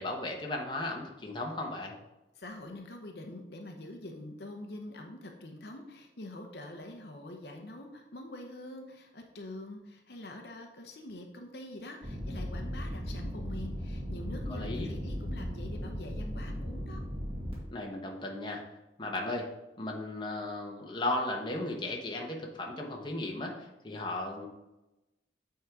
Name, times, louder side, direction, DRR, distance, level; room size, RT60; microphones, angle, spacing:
voice 1, 0.0-1.9 14.5-14.9 17.7-18.7 19.0-19.5 19.8-24.5, left 2 dB, 25° left, 0 dB, 1.0 m, -35 dB
voice 2, 2.4-17.0, left 1 dB, 60° left, 3 dB, 0.8 m, -45 dB
sound 1, 12.0-17.5, equal, 30° right, 1.9 m, -37 dB
8.5 x 3.8 x 4.7 m, 0.97 s
head